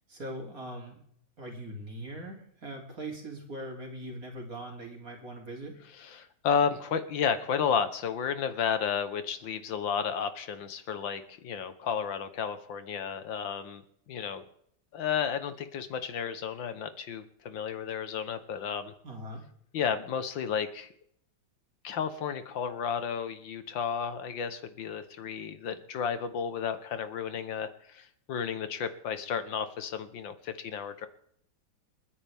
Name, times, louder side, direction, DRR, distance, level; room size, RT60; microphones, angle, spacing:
voice 1, 0.1-1.0 1.4-5.8 19.0-19.5, right 1 dB, 45° right, 1 dB, 3.6 m, -41 dB
voice 2, 6.0-13.8 14.1-14.4 14.9-18.9 19.7-20.9 21.8-31.1, left 7 dB, 75° left, 10 dB, 1.8 m, -32 dB
28.5 x 10.0 x 3.5 m, 0.68 s
omnidirectional pair, 2.1 m